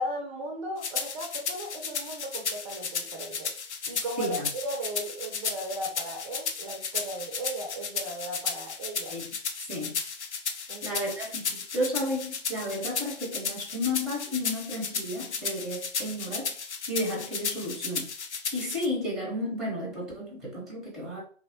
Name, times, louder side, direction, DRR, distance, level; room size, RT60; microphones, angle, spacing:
voice 1, 0.0-3.5 3.9-9.2 10.7-11.0, right 1 dB, 30° right, 1 dB, 0.4 m, -36 dB
sound 1, 0.8-18.9, left 5 dB, 80° left, 0.5 m, -34 dB
voice 2, 4.2-4.5 9.1-9.3 9.7-9.9 10.8-18.1 18.5-21.2, left 1 dB, ahead, -2 dB, 0.7 m, -33 dB
2.8 x 2.0 x 2.7 m, 0.43 s
figure-of-eight pair, 115°, 33 cm